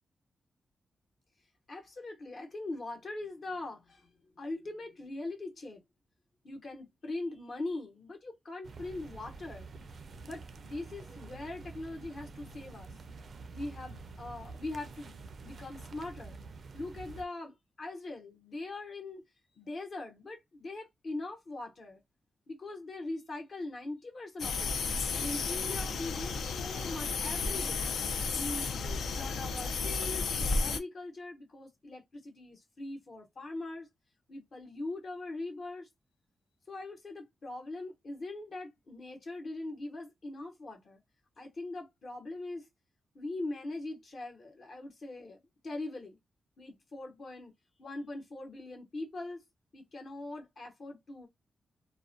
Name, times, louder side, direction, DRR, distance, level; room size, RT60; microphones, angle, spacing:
voice 1, 1.7-4.1 4.4-5.8 6.4-9.7 10.2-13.0 13.5-15.2 15.4-16.4 16.7-19.2 19.6-22.0 22.5-24.8 25.1-27.8 28.3-33.9 34.3-35.9 36.7-41.0 41.4-42.7 43.1-46.2 46.6-47.5 47.8-49.4 49.7-51.3, left 2 dB, 50° left, 1.0 m, -41 dB
sound 1, 8.6-17.2, right 4 dB, 50° right, 0.3 m, -48 dB
sound 2, 24.4-30.8, left 4 dB, 85° left, 0.4 m, -33 dB
2.4 x 2.1 x 2.5 m
wide cardioid pair, 135°, 0 cm